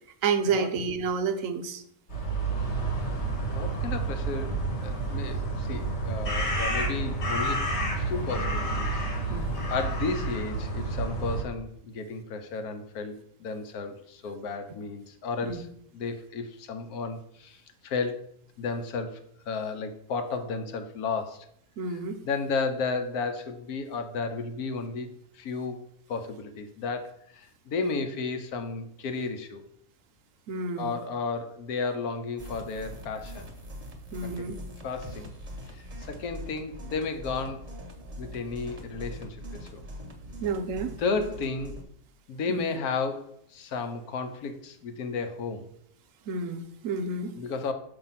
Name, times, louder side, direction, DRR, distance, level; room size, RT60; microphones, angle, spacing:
voice 1, 0.2-1.8 9.3-9.5 15.4-15.6 21.8-22.2 30.5-31.0 34.1-34.6 40.4-40.9 42.5-42.6 46.3-47.3, right 4 dB, 70° right, 8 dB, 0.9 m, -30 dB
sound 1, 2.1-11.4, right 2 dB, 50° left, 1.4 m, -29 dB
voice 2, 3.5-7.7 8.0-9.0 9.3-9.4 9.7-15.7 15.9-18.2 18.6-21.4 21.9-22.0 22.2-25.1 25.3-25.8 26.1-29.6 30.8-33.5 34.2-34.5 34.8-35.3 35.7-37.6 38.2-39.8 41.0-41.8 42.3-45.7 47.4-47.7, left 4 dB, 80° left, 7 dB, 1.2 m, -33 dB
sound 2, 32.4-41.8, equal, 30° right, 0.9 m, -42 dB
6.8 x 2.9 x 5.6 m, 0.70 s
omnidirectional pair, 1.6 m